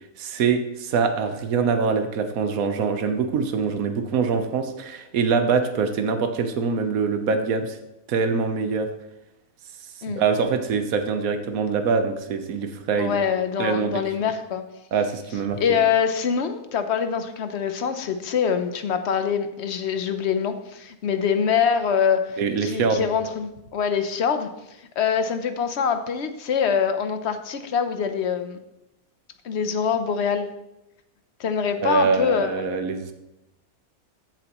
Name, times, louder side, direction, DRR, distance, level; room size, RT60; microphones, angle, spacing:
voice 1, 0.2-7.8 8.1-8.9 10.1-13.2 13.6-14.0 14.9-15.8 22.4-23.1 31.8-33.1, right 5 dB, 75° right, 7 dB, 1.3 m, -24 dB
voice 2, 13.0-14.6 15.6-24.5 25.0-28.6 29.4-30.5 31.4-32.7, left 7 dB, 55° left, 8 dB, 1.0 m, -24 dB
14.5 x 7.5 x 3.0 m, 0.92 s
omnidirectional pair, 1.5 m